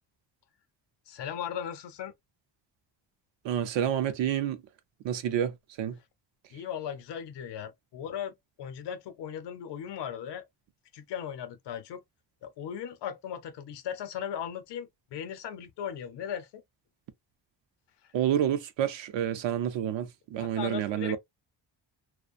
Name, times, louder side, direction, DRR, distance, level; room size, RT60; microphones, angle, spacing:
voice 1, 1.1-2.1 6.5-10.4 10.9-12.0 12.4-16.6 20.4-21.2, left 9 dB, 70° left, 0.6 m, -37 dB
voice 2, 3.4-4.6 5.0-6.0 18.1-21.2, right 10 dB, 80° right, 0.6 m, -29 dB
2.4 x 2.2 x 2.4 m
wide cardioid pair, 155°, 44 cm